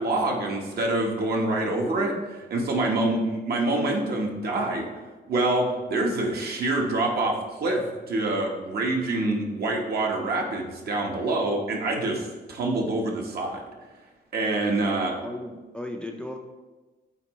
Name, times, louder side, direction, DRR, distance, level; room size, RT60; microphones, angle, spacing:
voice 1, 0.0-2.1 2.5-4.9 5.3-13.6 14.3-15.1, right 2 dB, 60° right, 0 dB, 1.2 m, -26 dB
voice 2, 1.7-2.2 2.8-2.9 15.2-16.4, left 1 dB, 5° left, 2 dB, 0.5 m, -36 dB
8.3 x 4.2 x 3.1 m, 1.2 s
cardioid pair, 130°, 18 cm